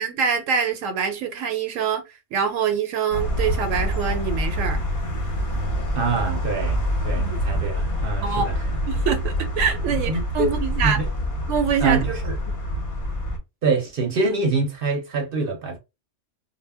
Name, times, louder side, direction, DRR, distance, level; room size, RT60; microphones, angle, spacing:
voice 1, 0.0-2.0 2.3-4.8 7.2-7.4 8.2-8.5 8.9-11.0 11.5-12.0, right 7 dB, 85° right, 0.9 m, -25 dB
sound 1, 3.1-13.4, equal, 50° left, 0.7 m, -26 dB
voice 2, 6.0-8.5 9.9-10.5 10.8-11.1 11.8-12.3 13.6-15.8, right 3 dB, 55° right, 0.7 m, -25 dB
2.1 x 2.0 x 3.3 m
omnidirectional pair, 1.3 m